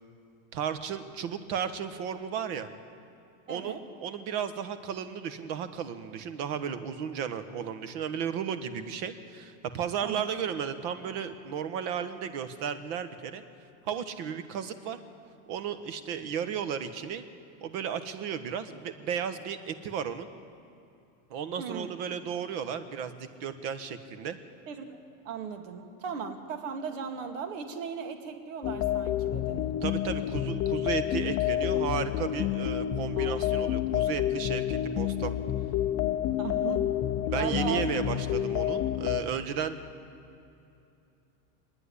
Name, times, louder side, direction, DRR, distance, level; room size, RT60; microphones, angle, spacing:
voice 1, 0.5-2.7 3.5-13.4 13.8-15.0 15.5-17.2 17.6-20.3 21.3-24.4 29.8-35.3 37.2-39.8, right 7 dB, 50° right, 10 dB, 1.4 m, -34 dB
voice 2, 3.5-3.8 10.0-10.2 21.6-21.9 24.7-25.0 25.2-29.7 33.2-33.5 34.0-34.1 36.4-36.8 37.3-37.9, right 6 dB, 75° right, 5 dB, 2.4 m, -37 dB
sound 1, 28.6-39.2, left 12 dB, 25° left, 0.6 m, -29 dB
27.0 x 10.0 x 9.8 m, 2.7 s
supercardioid pair, 170°, 38 cm